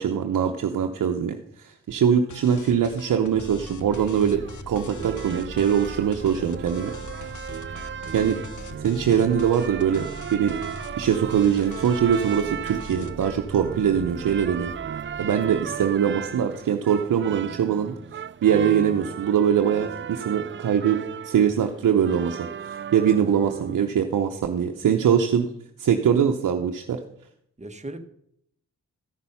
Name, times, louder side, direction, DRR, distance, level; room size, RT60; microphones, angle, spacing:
voice 1, 0.0-6.9 8.1-8.4 8.8-10.0 10.3-10.5 11.0-14.7 15.2-17.9 18.4-21.0 21.2-25.5 25.8-27.0, right 8 dB, 70° right, 4 dB, 0.8 m, -22 dB
sound 1, 2.3-13.2, left 6 dB, 65° left, 0.9 m, -44 dB
sound 2, 3.3-16.8, equal, 5° left, 3.0 m, -42 dB
sound 3, 3.9-23.8, right 8 dB, 40° right, 0.4 m, -36 dB
voice 2, 24.7-25.2 27.6-28.0, right 1 dB, 20° right, 6 dB, 1.3 m, -39 dB
13.5 x 6.1 x 5.6 m, 0.71 s
cardioid pair, 60°, 32 cm